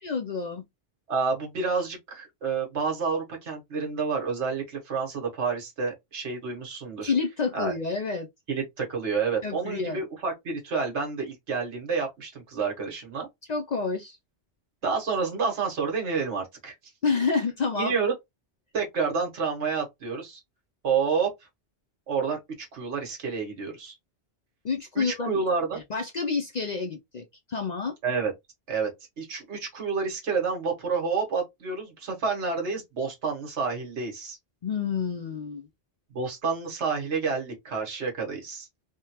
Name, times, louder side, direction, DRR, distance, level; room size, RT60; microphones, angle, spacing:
voice 1, 0.0-0.6 7.0-8.3 9.4-10.0 13.5-14.2 17.0-17.9 24.6-25.4 25.7-27.9 34.6-35.7, left 5 dB, 50° left, 0.5 m, -29 dB
voice 2, 1.1-7.1 7.5-7.7 8.5-13.3 14.8-16.7 17.7-18.1 18.7-20.4 20.8-21.3 22.1-24.0 24.9-25.8 28.0-28.3 28.7-28.9 29.2-34.4 36.1-38.7, right 5 dB, 80° right, 1.5 m, -29 dB
3.3 x 2.2 x 2.8 m
omnidirectional pair, 1.2 m